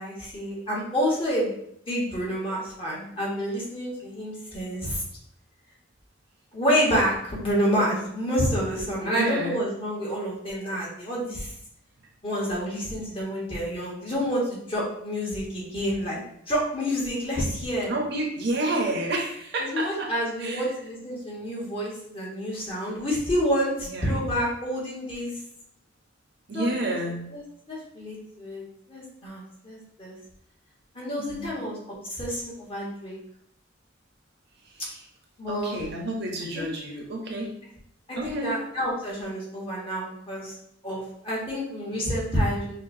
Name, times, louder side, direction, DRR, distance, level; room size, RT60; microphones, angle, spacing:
voice 1, 0.0-1.5 1.9-5.0 6.5-11.5 12.2-16.2 16.5-17.9 19.6-25.4 26.5-26.9 27.3-30.1 30.9-31.8 32.1-33.1 35.4-35.8 36.5-36.7 38.1-40.5 40.8-42.8, equal, 25° left, -5 dB, 1.3 m, -28 dB
voice 2, 9.0-9.6 17.9-20.1 20.4-20.7 23.8-24.2 26.5-27.3 31.2-31.7 34.6-35.0 35.5-37.5 38.2-38.5, right 1 dB, 60° right, 0 dB, 0.8 m, -30 dB
5.7 x 2.2 x 2.7 m, 0.72 s
head